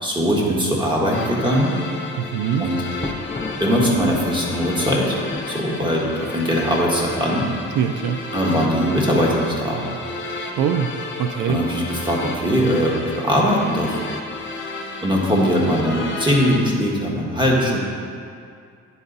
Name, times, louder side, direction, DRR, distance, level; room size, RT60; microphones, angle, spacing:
voice 1, 0.0-1.7 2.6-2.8 3.6-5.2 5.5-7.4 8.3-9.9 11.5-14.0 15.0-17.8, equal, 15° right, -3 dB, 1.5 m, -20 dB
sound 1, 1.1-16.6, left 3 dB, 35° left, 0.9 m, -32 dB
voice 2, 2.2-2.7 7.8-8.2 10.6-11.6, right 8 dB, 75° right, 6 dB, 0.5 m, -23 dB
Thunder, 2.8-6.9, left 3 dB, 15° left, 0.4 m, -35 dB
9.8 x 3.9 x 3.9 m, 2.3 s
cardioid pair, 95°, 31 cm